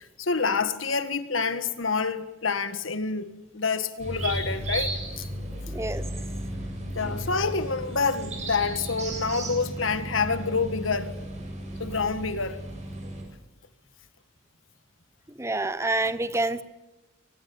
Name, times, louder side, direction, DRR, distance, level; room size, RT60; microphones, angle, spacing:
voice 1, 0.0-5.2 7.0-11.2 11.8-12.6, left 4 dB, 80° left, 1.7 m, -27 dB
sound 1, 4.0-13.2, right 1 dB, 35° right, 7.3 m, -34 dB
voice 2, 5.7-6.0 15.4-16.6, right 2 dB, 15° right, 0.9 m, -27 dB
23.5 x 20.0 x 8.7 m
head